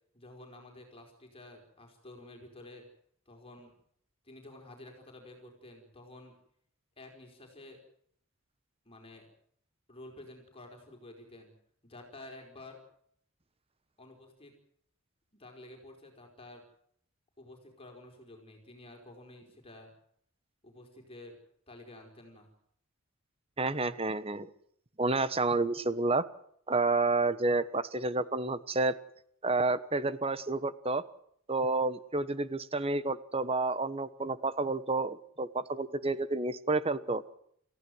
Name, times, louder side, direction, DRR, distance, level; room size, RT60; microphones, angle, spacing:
voice 1, 0.1-2.9 3.2-3.7 4.2-6.4 7.0-7.8 8.8-9.3 9.9-11.5 11.8-12.8 14.0-14.5 15.3-16.6 17.4-19.9 20.6-21.4 21.7-22.5, left 2 dB, 25° left, 2 dB, 4.9 m, -51 dB
voice 2, 23.6-24.5 25.0-26.3 26.7-29.0 29.4-31.0 31.5-37.2, right 3 dB, 25° right, 14 dB, 1.1 m, -30 dB
28.5 x 15.5 x 7.9 m, 0.67 s
head